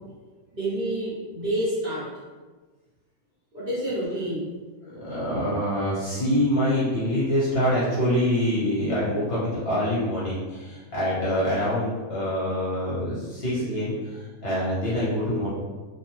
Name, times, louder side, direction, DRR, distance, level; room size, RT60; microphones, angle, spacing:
voice 1, 0.5-2.1 3.5-4.5, right 1 dB, 45° right, -10 dB, 1.1 m, -28 dB
voice 2, 4.8-15.5, equal, 50° left, -9 dB, 1.0 m, -25 dB
2.6 x 2.1 x 3.0 m, 1.3 s
omnidirectional pair, 1.5 m